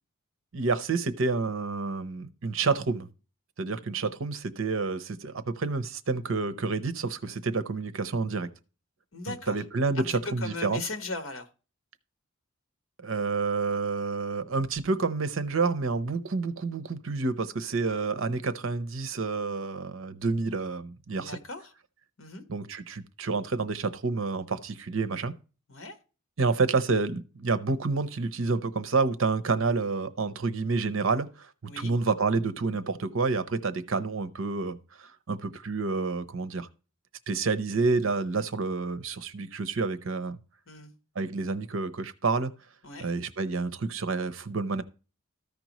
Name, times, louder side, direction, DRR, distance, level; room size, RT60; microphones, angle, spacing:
voice 1, 0.5-3.1 3.6-8.5 9.3-10.8 13.0-21.4 22.5-25.3 26.4-36.7 37.3-40.4 41.2-42.5 43.0-44.8, right 4 dB, 65° right, 0.7 m, -29 dB
voice 2, 9.1-9.6 9.9-11.5 21.1-21.7 22.2-22.4 25.7-26.0 31.7-31.9 40.7-40.9 42.8-43.1, left 3 dB, 70° left, 1.3 m, -38 dB
14.0 x 5.2 x 3.0 m
head